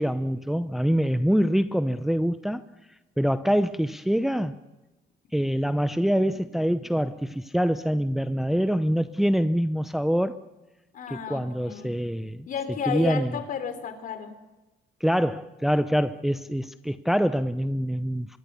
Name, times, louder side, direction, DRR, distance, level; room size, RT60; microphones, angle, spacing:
voice 1, 0.0-2.6 3.2-4.5 5.3-10.4 11.1-12.5 12.9-13.3 15.0-18.4, equal, ahead, 0.7 m, -25 dB
voice 2, 10.9-12.0 12.5-14.3, left 7 dB, 55° left, 3.7 m, -32 dB
24.0 x 22.0 x 6.9 m
cardioid pair, 110°, 17 cm